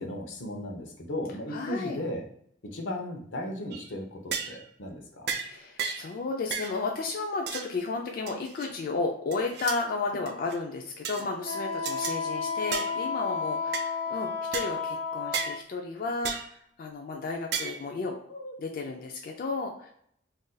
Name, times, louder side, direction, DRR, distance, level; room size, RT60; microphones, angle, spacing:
voice 1, 0.0-2.3 2.6-5.4, left 1 dB, 85° left, 3 dB, 0.6 m, -36 dB
voice 2, 1.5-2.0 5.4-19.9, left 3 dB, 50° left, 2 dB, 0.3 m, -33 dB
sound 1, 3.7-3.9 4.3-4.6 5.3-5.5 5.8-6.1 6.5-6.8 7.5-7.7 8.3-8.7 9.3-9.8 10.3-10.6 11.0-11.3 11.8-12.2 12.7-13.0 13.7-13.9 14.5-14.7 15.3-15.6 16.2-16.5 17.5-17.8, right 6 dB, 60° right, 0.4 m, -33 dB
Wind instrument woodwind instrument, 11.4-15.6, left 5 dB, 85° right, 0.7 m, -32 dB
2.5 x 2.3 x 3.8 m, 0.66 s
head